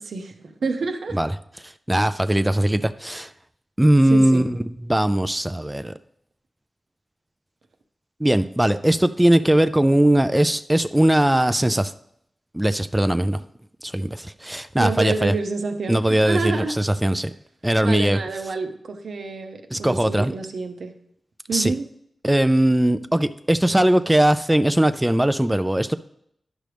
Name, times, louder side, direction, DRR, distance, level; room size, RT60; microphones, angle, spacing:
voice 1, 0.0-1.2 4.1-4.5 14.8-16.7 17.8-20.9 21.5-21.8, right 4 dB, 85° right, 6 dB, 0.8 m, -28 dB
voice 2, 1.6-3.3 3.8-5.9 8.2-11.9 12.5-13.4 13.8-15.3 15.9-17.3 17.6-18.2 19.7-20.3 21.5-21.7 22.2-25.9, right 1 dB, 10° right, 11 dB, 0.3 m, -20 dB
10.5 x 6.2 x 3.4 m, 0.72 s
wide cardioid pair, 95°, 0 cm